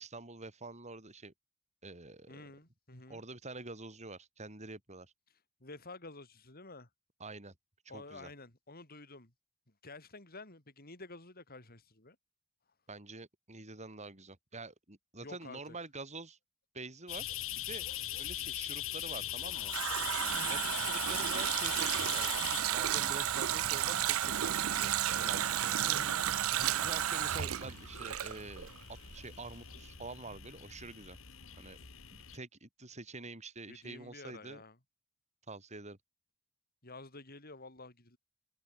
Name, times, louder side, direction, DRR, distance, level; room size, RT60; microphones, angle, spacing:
voice 1, 0.0-1.3 1.8-2.4 3.1-5.1 7.2-7.5 7.8-8.3 12.9-16.4 16.7-17.8 18.2-19.7 20.5-25.8 26.8-28.7 29.1-31.2 31.6-31.8 32.1-34.6 35.5-36.0, right 3 dB, 35° right, 4.6 m, -47 dB
voice 2, 2.3-3.2 5.6-6.9 7.9-9.3 9.8-12.2 15.2-15.8 20.3-20.6 25.9-26.8 33.7-34.8 36.8-38.2, left 2 dB, 45° left, 5.5 m, -50 dB
sound 1, 17.1-32.4, left 12 dB, 65° left, 2.9 m, -42 dB
Water tap faucet, 19.2-28.8 29.1-29.2, right 11 dB, 90° right, 0.7 m, -32 dB
head